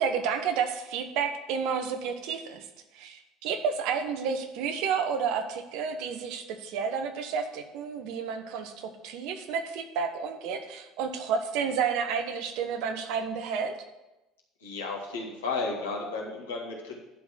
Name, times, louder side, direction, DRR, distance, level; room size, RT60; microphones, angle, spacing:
voice 1, 0.0-2.7 2.9-13.7, right 6 dB, 65° right, 7 dB, 1.1 m, -31 dB
voice 2, 14.6-17.0, left 3 dB, 85° left, -1 dB, 1.9 m, -33 dB
11.5 x 4.0 x 7.6 m, 1.0 s
hypercardioid pair, 65°, 0 cm